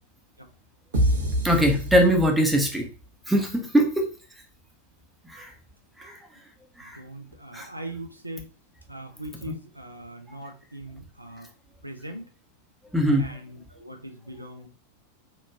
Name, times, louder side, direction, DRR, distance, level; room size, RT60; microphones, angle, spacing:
sound 1, 0.9-2.8, right 1 dB, 65° right, 0.8 m, -26 dB
voice 1, 1.4-2.9 3.3-4.1 5.3-5.5 6.0-6.2 6.8-7.0 7.5-7.7 9.5-9.6 12.9-13.3, equal, 5° right, 2 dB, 0.6 m, -22 dB
voice 2, 6.8-8.5 8.9-11.5 11.8-12.2 13.2-14.7, right 1 dB, 85° right, 4 dB, 0.5 m, -40 dB
3.0 x 2.4 x 2.2 m, 0.35 s
figure-of-eight pair, 90°, 0 cm